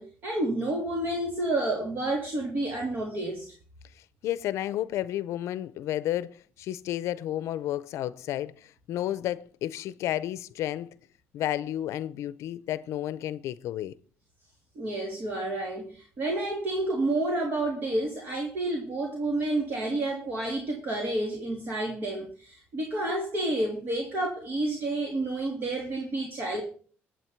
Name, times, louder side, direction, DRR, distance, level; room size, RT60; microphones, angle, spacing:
voice 1, 0.0-3.5 14.7-26.6, right 2 dB, 45° right, 3.0 m, -30 dB
voice 2, 4.0-10.9 11.3-13.9, left 12 dB, 75° left, 0.6 m, -32 dB
21.5 x 8.0 x 4.6 m
cardioid pair, 120°, 5 cm